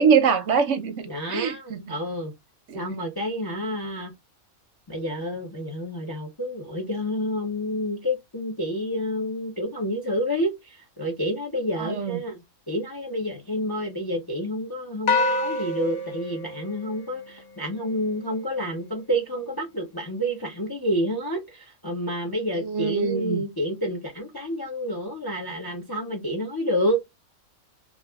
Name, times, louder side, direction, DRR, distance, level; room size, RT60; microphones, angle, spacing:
voice 1, 0.0-1.9 2.7-2.8 11.8-12.2 22.6-23.4, right 6 dB, 65° right, 0.8 m, -23 dB
voice 2, 1.1-2.3 2.7-4.1 4.9-27.0, equal, 25° left, 0.4 m, -29 dB
sound 1, 15.1-17.6, left 2 dB, 65° left, 0.9 m, -27 dB
2.5 x 2.4 x 3.3 m
omnidirectional pair, 1.5 m